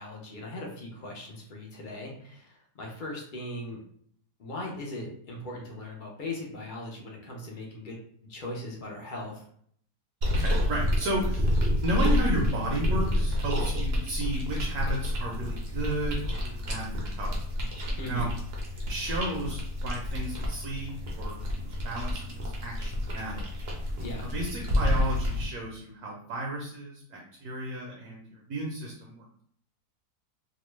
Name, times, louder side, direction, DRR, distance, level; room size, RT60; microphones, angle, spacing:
voice 1, 0.0-3.8 4.4-8.0 8.3-9.4 18.0-18.3 24.0-24.3, left 1 dB, 55° left, -2 dB, 0.5 m, -38 dB
sound 1, 10.2-25.4, left 1 dB, 55° right, 0.7 m, -29 dB
voice 2, 10.2-17.5 18.1-18.3 18.9-23.5 24.3-29.3, right 1 dB, 70° right, -1 dB, 1.1 m, -33 dB
2.9 x 2.2 x 3.1 m, 0.63 s
omnidirectional pair, 1.7 m